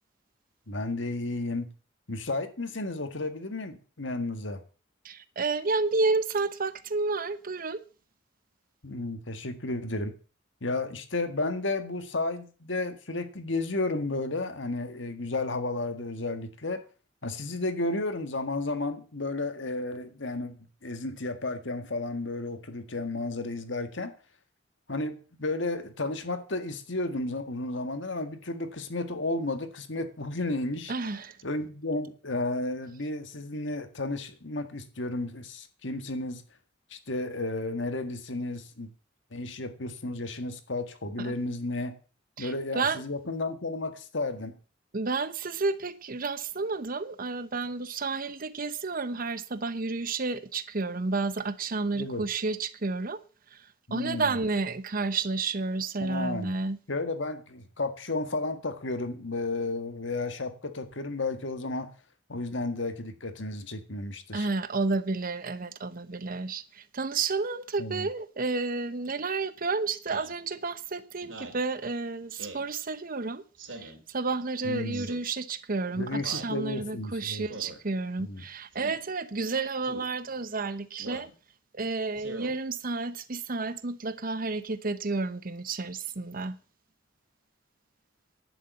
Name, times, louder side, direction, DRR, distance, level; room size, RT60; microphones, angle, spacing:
voice 1, 0.7-1.7 2.1-4.6 8.8-10.1 10.6-16.8 17.2-24.1 24.9-30.9 31.4-36.4 36.9-38.9 39.3-41.9 42.4-44.6 51.9-52.2 53.9-54.3 56.0-56.5 56.9-61.9 62.3-64.5 67.8-68.1 74.6-75.1 76.0-77.5 78.2-78.4, left 2 dB, 75° left, 1.7 m, -33 dB
voice 2, 5.0-7.8 30.9-31.4 41.2-41.4 42.4-43.0 44.9-53.2 53.5-53.6 53.9-56.8 64.3-73.4 73.8-81.3 81.7-86.6, right 3 dB, 50° right, 0.9 m, -31 dB
Speech synthesizer, 70.1-70.4 71.2-71.6 72.4-72.7 73.6-74.0 74.9-75.3 76.2-76.5 77.5-77.8 78.7-79.0 79.8-80.1 81.0-81.3 82.2-82.5, right 2 dB, 75° right, 3.0 m, -42 dB
11.0 x 7.0 x 8.2 m
head